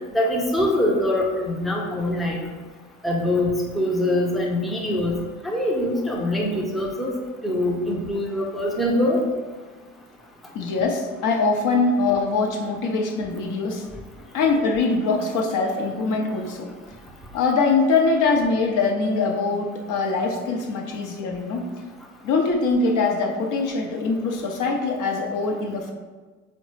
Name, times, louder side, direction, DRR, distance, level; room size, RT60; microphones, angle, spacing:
voice 1, 0.1-2.5 3.0-5.1 5.4-7.1 7.4-9.2, left 1 dB, ahead, -2 dB, 0.5 m, -23 dB
voice 2, 10.5-13.8 14.3-16.7 17.3-21.7 22.2-25.9, left 4 dB, 60° left, 2 dB, 0.6 m, -23 dB
3.7 x 2.1 x 3.1 m, 1.3 s
supercardioid pair, 70°, 35 cm